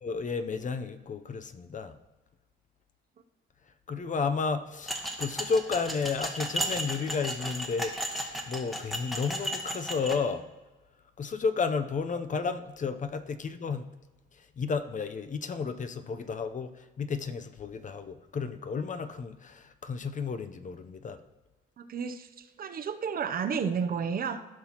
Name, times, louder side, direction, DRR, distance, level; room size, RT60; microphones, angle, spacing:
voice 1, 0.0-2.0 3.9-10.5 11.2-13.9 14.3-21.2, left 5 dB, 40° left, 0.7 m, -32 dB
sound 1, 4.9-10.2, right 1 dB, ahead, 1.3 m, -34 dB
voice 2, 21.8-24.5, right 6 dB, 50° right, 0.6 m, -32 dB
15.5 x 5.8 x 3.0 m
cardioid pair, 90°, 20 cm